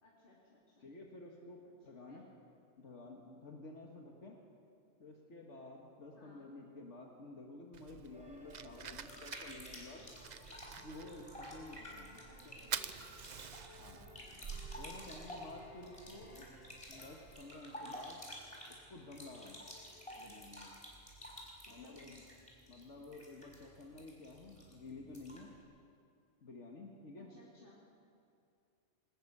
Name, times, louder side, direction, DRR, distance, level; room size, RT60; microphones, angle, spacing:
voice 1, 0.0-0.9 1.6-2.3 6.1-6.5 11.8-13.2 13.7-14.4 16.2-16.5 21.7-22.1 27.2-27.8, left 1 dB, 45° left, -6 dB, 3.2 m, -61 dB
voice 2, 0.8-2.3 2.8-4.4 5.0-10.1 10.8-12.2 13.7-14.0 14.8-16.3 16.9-18.3 18.7-19.6 20.2-20.7 21.7-22.2 22.7-25.6 26.4-27.3, left 2 dB, 75° left, 0 dB, 2.0 m, -52 dB
Fire, 7.7-17.4, right 7 dB, 45° right, 0.6 m, -48 dB
sound 1, 8.1-20.3, left 1 dB, 5° right, 4.3 m, -61 dB
sound 2, 8.7-25.6, equal, 25° left, 4.7 m, -52 dB
21.5 x 19.5 x 6.9 m, 2.5 s
omnidirectional pair, 1.2 m